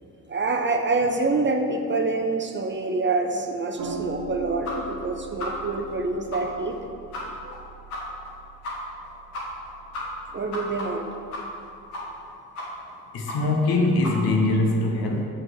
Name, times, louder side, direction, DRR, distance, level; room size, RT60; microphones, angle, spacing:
voice 1, 0.3-6.8 7.4-7.6 10.3-11.1, right 3 dB, 25° right, 5 dB, 0.7 m, -26 dB
sound 1, 3.8-12.3, right 2 dB, 45° right, 1.0 m, -41 dB
sound 2, 4.6-4.7 5.0-5.1 5.4-5.5 5.9-6.0 6.3-6.4 6.7-6.8 7.1-7.2 7.5-7.6 7.9-8.0 8.2-8.3 8.6-8.7 9.0-9.1 9.3-9.7 9.9-11.6 11.9-12.3 12.5-12.9 13.3-13.4 13.6-13.7 14.0-14.1, left 2 dB, 85° left, 1.5 m, -34 dB
voice 2, 13.1-15.3, left 2 dB, 60° left, 1 dB, 1.3 m, -22 dB
7.5 x 4.4 x 4.7 m, 2.5 s
hypercardioid pair, 50°, 43 cm